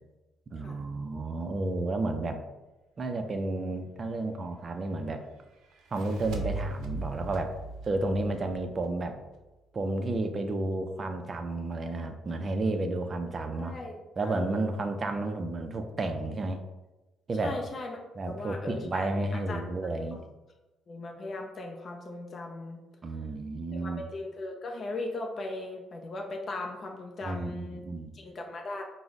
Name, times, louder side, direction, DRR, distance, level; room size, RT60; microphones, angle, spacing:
voice 1, 0.5-2.4 3.0-5.2 5.9-7.6 7.9-9.1 9.7-13.8 14.2-16.6 17.3-17.6 18.2-20.3 23.0-24.1 27.2-28.1, right 2 dB, 30° right, 6 dB, 0.4 m, -31 dB
sound 1, 5.7-9.1, right 3 dB, 85° right, 0.5 m, -39 dB
voice 2, 13.6-14.7 17.4-18.0 18.3-19.9 20.9-22.8 23.7-27.9 28.1-28.8, left 2 dB, 35° left, 2 dB, 0.4 m, -38 dB
4.5 x 2.0 x 3.9 m, 1.1 s
cardioid pair, 145°, 0 cm